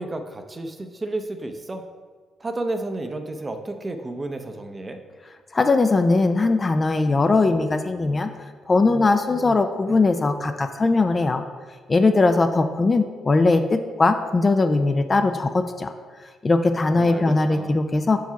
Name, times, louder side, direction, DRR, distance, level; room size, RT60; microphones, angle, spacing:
voice 1, 0.0-1.8 2.4-5.0 16.9-17.8, right 2 dB, 25° right, 7 dB, 0.6 m, -32 dB
voice 2, 5.5-8.3 8.7-11.4 11.9-15.9 16.4-18.2, left 3 dB, 30° left, 8 dB, 0.4 m, -20 dB
4.7 x 4.6 x 5.7 m, 1.5 s
cardioid pair, 90°, 0 cm